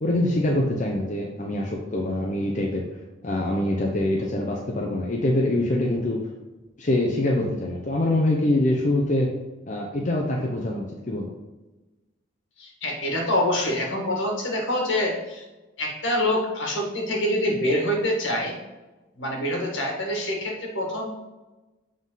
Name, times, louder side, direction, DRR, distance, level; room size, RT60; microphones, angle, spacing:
voice 1, 0.0-2.8 3.2-6.2 6.8-9.3 9.7-11.3, left 1 dB, 40° left, -1 dB, 0.7 m, -24 dB
voice 2, 12.6-15.5 15.8-18.6 19.2-21.1, left 1 dB, 70° left, -1 dB, 1.9 m, -25 dB
7.3 x 3.8 x 4.0 m, 1.1 s
head